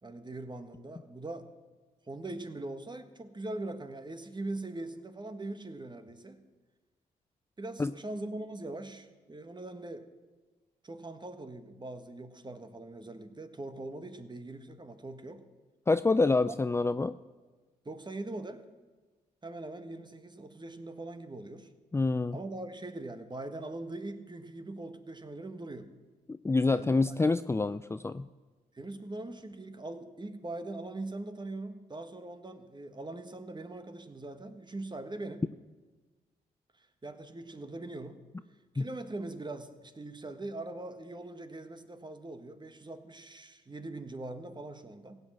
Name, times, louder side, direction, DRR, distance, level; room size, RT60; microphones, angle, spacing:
voice 1, 0.0-1.5 2.1-6.4 7.6-10.1 10.8-15.4 16.5-16.6 17.8-18.6 19.4-21.7 22.3-25.9 26.7-27.1 28.7-35.5 36.8-38.2 38.7-45.2, right 2 dB, 25° right, 9 dB, 1.6 m, -41 dB
voice 2, 15.9-17.2 21.9-22.4 26.4-28.3 38.8-38.9, left 3 dB, 15° left, 13 dB, 0.4 m, -27 dB
16.0 x 8.4 x 7.6 m, 1.3 s
supercardioid pair, 50°, 17 cm